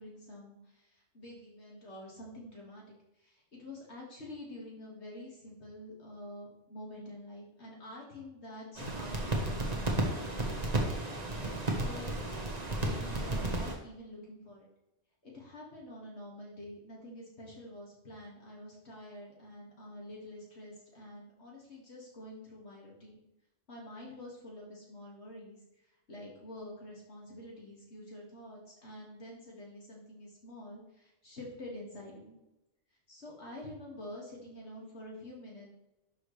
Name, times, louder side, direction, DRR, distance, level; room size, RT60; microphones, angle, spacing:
voice 1, 0.0-3.0 3.2-10.7 11.4-12.4 12.8-14.7 15.2-23.2 23.7-25.6 26.1-32.4 33.1-35.7, left 1 dB, 65° left, -3 dB, 2.3 m, -47 dB
sound 1, 8.8-13.7, right 1 dB, 35° right, 1.4 m, -33 dB
11.5 x 4.9 x 3.3 m, 0.90 s
omnidirectional pair, 1.2 m